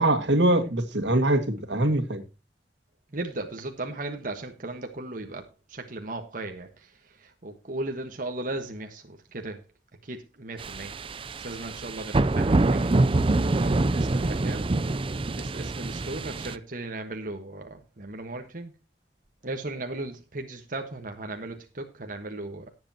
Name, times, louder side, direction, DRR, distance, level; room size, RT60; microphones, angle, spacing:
voice 1, 0.0-2.2, right 1 dB, 85° right, 2.0 m, -23 dB
voice 2, 3.1-9.6 10.0-10.9 11.4-14.9 15.3-18.7 19.4-22.7, right 2 dB, 50° right, 1.3 m, -37 dB
sound 1, 10.6-16.6, right 2 dB, 30° right, 0.5 m, -25 dB
18.0 x 7.8 x 2.9 m
head